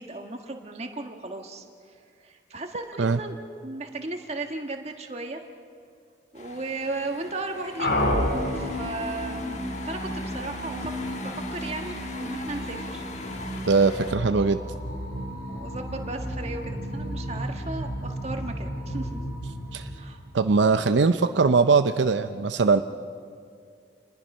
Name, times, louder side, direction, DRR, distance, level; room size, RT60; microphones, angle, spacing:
voice 1, 0.0-1.6 2.2-3.4 3.6-5.4 6.3-7.9 8.5-10.9 11.2-13.0 14.3-14.6 15.5-19.2 20.0-20.2, right 2 dB, 35° right, 4 dB, 1.6 m, -35 dB
sound 1, 6.3-14.2, left 3 dB, 40° left, 1.4 m, -42 dB
sound 2, 7.8-20.7, equal, 65° left, 3.4 m, -32 dB
voice 2, 13.7-14.6 19.7-19.9 20.3-22.8, right 4 dB, 85° right, 9 dB, 0.6 m, -21 dB
28.5 x 20.5 x 5.5 m, 2.2 s
head